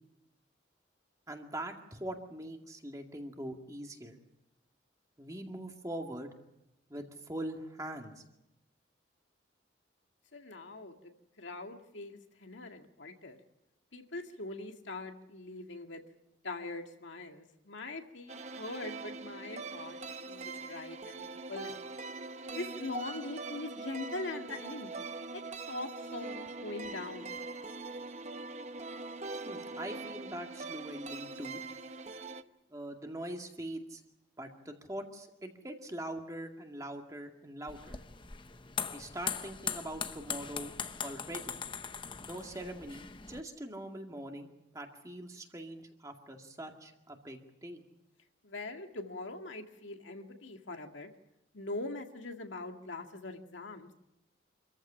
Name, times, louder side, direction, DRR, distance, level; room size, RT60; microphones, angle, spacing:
voice 1, 1.3-4.2 5.2-6.3 6.9-8.2 29.5-31.6 32.7-34.0 34.4-38.0 38.9-40.7 41.0-41.6 42.3-47.8, right 1 dB, 15° right, 3 dB, 2.1 m, -42 dB
voice 2, 10.3-11.0 11.4-13.4 13.9-16.0 16.4-20.0 20.3-21.8 22.6-24.9 25.3-25.4 25.7-27.3 48.4-51.1 51.5-53.9, left 2 dB, 80° left, 4 dB, 2.1 m, -42 dB
sound 1, 18.3-32.4, right 3 dB, 35° right, 0.8 m, -42 dB
sound 2, 37.7-43.4, left 6 dB, 25° left, 0.8 m, -40 dB
26.0 x 14.5 x 10.0 m, 0.89 s
head